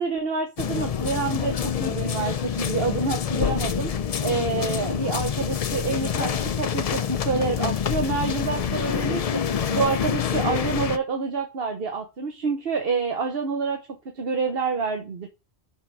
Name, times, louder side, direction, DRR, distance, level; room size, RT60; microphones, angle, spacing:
voice 1, 0.0-3.9 4.2-13.8 14.1-15.3, right 4 dB, 60° right, 1.2 m, -27 dB
sound 1, 0.6-11.0, left 8 dB, 50° left, 0.4 m, -26 dB
6.1 x 5.4 x 4.6 m
omnidirectional pair, 1.1 m